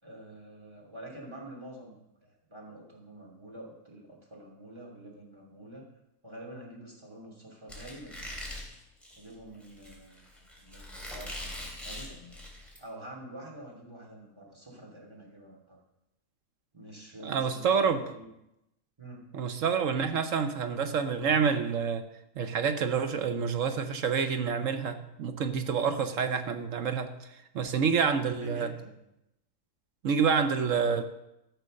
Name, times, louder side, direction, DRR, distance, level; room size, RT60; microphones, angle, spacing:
voice 1, 0.0-5.9 6.2-8.2 9.2-12.4 12.8-15.8 16.7-18.3 19.0-19.3 28.3-28.9, right 1 dB, 20° right, -2 dB, 2.8 m, -47 dB
Squeak, 7.7-12.8, left 1 dB, ahead, 3.2 m, -42 dB
voice 2, 17.2-18.0 19.3-22.0 22.4-27.1 27.5-28.7 30.0-31.0, right 6 dB, 65° right, 8 dB, 1.2 m, -28 dB
14.0 x 6.7 x 6.4 m, 0.87 s
omnidirectional pair, 1.5 m